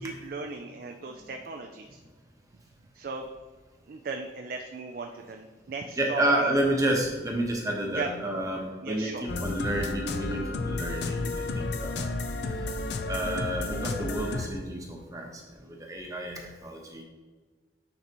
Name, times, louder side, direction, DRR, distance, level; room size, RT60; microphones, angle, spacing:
voice 1, 0.0-2.0 2.9-3.3 3.9-6.5 7.9-8.1 8.8-9.2 11.5-11.7, right 4 dB, 55° right, 3 dB, 0.4 m, -37 dB
voice 2, 6.0-11.3 11.5-12.0 13.1-15.3 15.8-17.0, right 1 dB, 20° right, 0 dB, 1.0 m, -30 dB
sound 1, 9.3-14.5, left 2 dB, 70° left, 0.5 m, -32 dB
9.2 x 4.0 x 3.0 m, 1.3 s
head